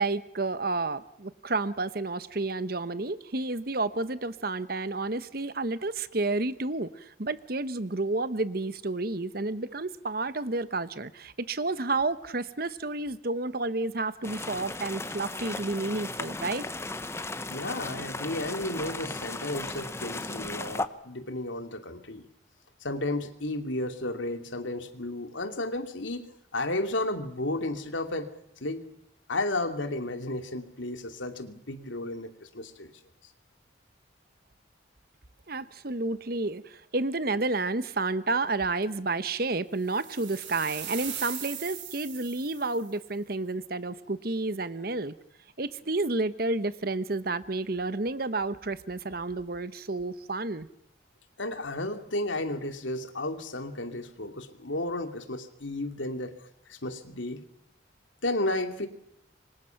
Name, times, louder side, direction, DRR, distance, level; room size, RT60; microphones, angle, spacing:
voice 1, 0.0-16.7 35.5-45.1 45.6-50.7, right 2 dB, 50° right, 1.1 m, -30 dB
sound 1, 14.2-20.9, left 2 dB, 15° left, 1.0 m, -36 dB
voice 2, 17.5-22.3 22.8-28.3 28.6-28.8 29.3-32.9 51.4-56.4 56.7-57.4 58.2-58.9, left 2 dB, 85° left, 2.9 m, -33 dB
sound 2, 39.9-42.9, right 10 dB, 75° right, 6.7 m, -39 dB
28.0 x 25.0 x 5.9 m
head